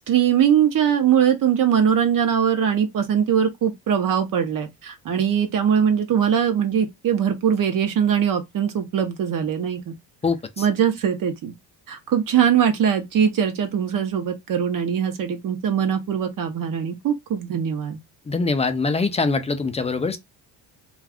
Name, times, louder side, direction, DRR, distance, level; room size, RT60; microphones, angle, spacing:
voice 1, 0.1-9.9 10.6-11.5 11.9-18.0, right 8 dB, 50° right, 0.7 m, -21 dB
voice 2, 18.3-20.2, left 4 dB, 15° left, 0.3 m, -23 dB
2.4 x 2.3 x 3.4 m
cardioid pair, 90°, 43 cm